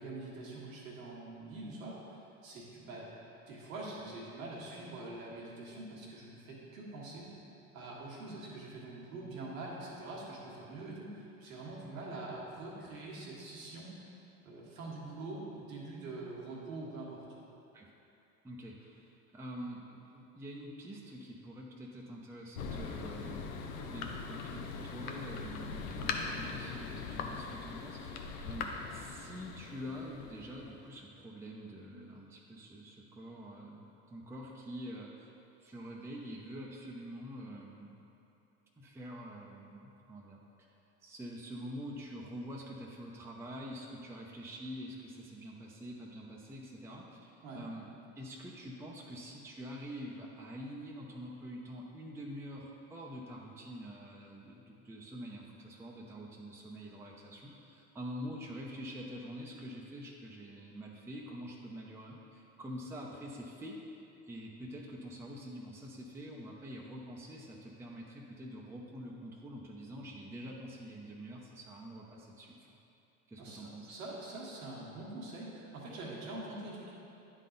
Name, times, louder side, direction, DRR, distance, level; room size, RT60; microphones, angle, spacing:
voice 1, 0.0-3.1 3.5-7.3 7.7-13.9 14.4-17.2 47.4-47.6 73.4-76.9, right 2 dB, 90° right, -4 dB, 1.6 m, -44 dB
voice 2, 18.4-35.3 35.6-38.0 38.8-40.7 41.0-47.8 48.2-63.8 64.3-72.5 73.3-73.9, equal, 5° right, -3 dB, 0.6 m, -46 dB
Thunder, 22.5-30.9, left 5 dB, 80° left, 0.7 m, -41 dB
9.8 x 3.9 x 3.8 m, 2.8 s
hypercardioid pair, 85°, 40 cm